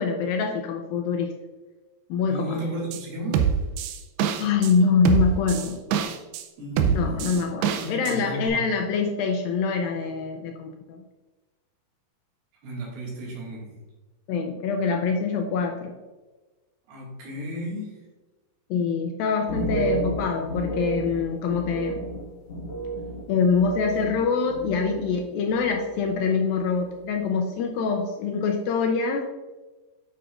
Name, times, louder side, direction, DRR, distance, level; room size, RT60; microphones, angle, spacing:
voice 1, 0.0-1.3 2.1-2.6 4.4-5.8 6.9-11.0 14.3-16.0 18.7-22.0 23.3-29.2, left 5 dB, 80° left, 3 dB, 2.2 m, -25 dB
voice 2, 2.3-3.4 6.6-7.1 7.8-8.6 12.6-13.8 16.9-17.9 19.5-20.0, equal, 70° right, -3 dB, 3.7 m, -33 dB
sound 1, 2.9-3.0 3.3-4.7 5.1-6.4 6.8-8.2 8.5-8.6, right 8 dB, 85° right, 2.7 m, -24 dB
sound 2, 19.4-25.2 25.5-26.2 26.5-26.9, right 2 dB, 45° left, 1.9 m, -33 dB
9.4 x 6.4 x 2.5 m, 1.2 s
omnidirectional pair, 4.6 m